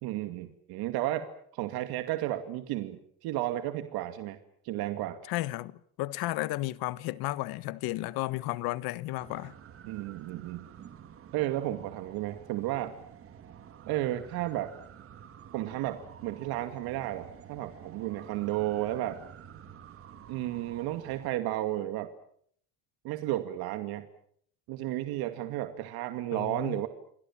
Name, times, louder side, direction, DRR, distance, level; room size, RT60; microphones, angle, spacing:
voice 1, 0.0-1.3 1.5-4.4 4.6-5.2 9.8-10.7 11.3-12.9 13.9-14.7 15.5-19.2 20.3-22.1 23.0-24.1 24.7-26.9, right 14 dB, 85° right, 2.4 m, -33 dB
voice 2, 5.3-9.5 26.3-26.8, left 18 dB, 85° left, 1.4 m, -33 dB
sound 1, 9.2-21.3, right 8 dB, 35° right, 2.4 m, -50 dB
29.0 x 23.5 x 7.4 m
cardioid pair, 175°, 36 cm